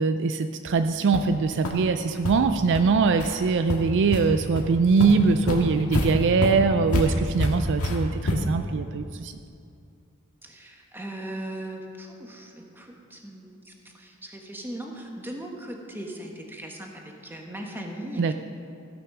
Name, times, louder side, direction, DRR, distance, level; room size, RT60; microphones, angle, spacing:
voice 1, 0.0-9.3 18.2-18.3, right 4 dB, 55° right, 9 dB, 0.4 m, -22 dB
Foot Steps on Carpet, 0.7-0.8 1.1-1.3 1.6-1.7 2.2-2.3 2.7-2.8 3.2-3.3 3.7-4.2 4.6-4.7 5.0-8.6, left 1 dB, 90° left, 1.7 m, -27 dB
voice 2, 10.4-18.3, right 1 dB, 10° right, 1 dB, 1.2 m, -38 dB
15.0 x 6.2 x 6.0 m, 2.5 s
head